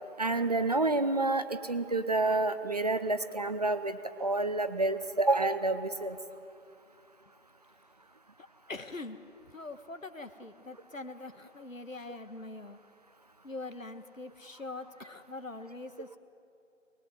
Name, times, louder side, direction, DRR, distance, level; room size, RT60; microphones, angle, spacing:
voice 1, 0.2-6.2, right 2 dB, 30° right, 11 dB, 0.7 m, -29 dB
voice 2, 8.7-9.2 9.5-12.8 13.4-16.2, left 2 dB, 80° left, 10 dB, 1.8 m, -43 dB
23.5 x 20.5 x 8.0 m, 2.6 s
figure-of-eight pair, 150°, 39 cm